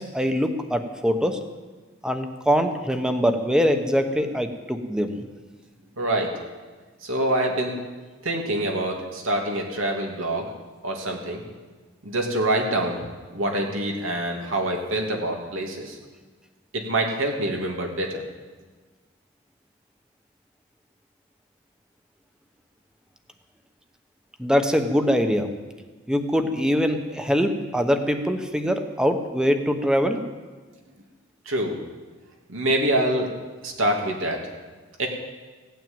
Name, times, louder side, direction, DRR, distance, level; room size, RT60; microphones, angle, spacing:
voice 1, 0.0-1.4 2.0-5.2 24.4-25.5 26.1-30.2, equal, 5° right, 7 dB, 1.1 m, -23 dB
voice 2, 6.0-6.3 7.0-7.7 8.2-10.5 10.8-11.4 12.0-13.0 13.3-16.0 16.7-18.2 31.5-31.8 32.5-33.3 33.6-34.4 35.0-35.1, right 1 dB, 85° right, 1 dB, 2.7 m, -25 dB
16.5 x 9.3 x 8.9 m, 1.4 s
head